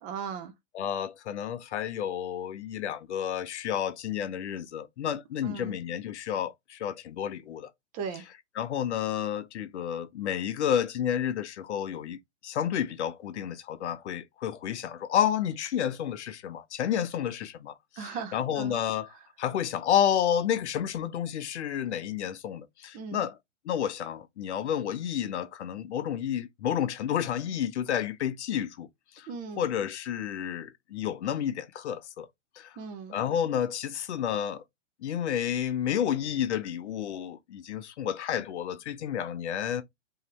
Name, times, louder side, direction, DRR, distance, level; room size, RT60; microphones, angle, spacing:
voice 1, 0.0-0.5 5.4-5.8 7.9-8.2 18.0-18.8 22.9-23.3 29.3-29.7 32.8-33.2, right 6 dB, 20° right, 0.8 m, -38 dB
voice 2, 0.7-7.7 8.6-23.4 23.6-28.9 29.2-29.3 29.6-32.3 32.6-32.7 33.1-34.6 35.0-39.8, left 9 dB, 60° left, 0.9 m, -30 dB
3.8 x 3.1 x 4.3 m
hypercardioid pair, 145°, 38 cm